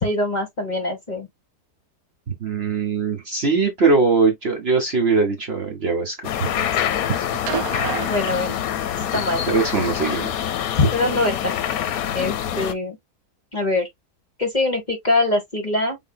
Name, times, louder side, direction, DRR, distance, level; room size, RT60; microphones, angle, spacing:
voice 1, 0.0-1.3 6.4-6.7 8.1-8.6 9.1-9.4 10.8-11.5 12.1-13.0 13.5-13.9 14.4-16.0, left 2 dB, 30° left, 1.0 m, -23 dB
voice 2, 2.4-6.3 7.2-7.3 9.5-10.3, right 4 dB, 45° right, 1.0 m, -21 dB
sound 1, 6.2-12.7, left 10 dB, 70° left, 1.0 m, -25 dB
sound 2, 7.5-9.1 10.4-10.5, right 8 dB, 70° right, 1.1 m, -30 dB
4.4 x 3.8 x 2.2 m
omnidirectional pair, 1.7 m